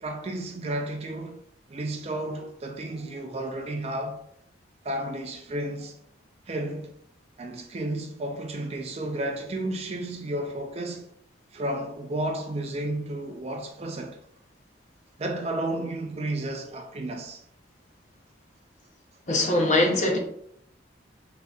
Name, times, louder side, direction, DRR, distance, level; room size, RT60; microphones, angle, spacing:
voice 1, 0.0-1.4 1.7-4.2 4.8-5.9 6.5-6.9 7.4-11.1 11.5-14.2 15.2-17.4, right 1 dB, 30° right, 0.4 m, -32 dB
voice 2, 19.3-20.2, left 1 dB, 40° left, 0.7 m, -22 dB
3.8 x 3.8 x 2.3 m
head